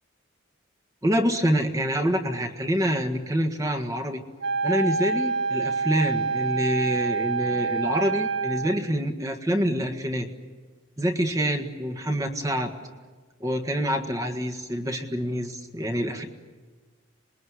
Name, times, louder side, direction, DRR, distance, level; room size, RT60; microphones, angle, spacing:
voice 1, 1.0-4.2 4.6-10.3 11.0-12.7 13.4-16.2, equal, 15° right, 5 dB, 1.7 m, -26 dB
Wind instrument woodwind instrument, 4.4-8.8, right 4 dB, 55° right, 1.0 m, -27 dB
27.0 x 21.0 x 9.8 m, 1.4 s
head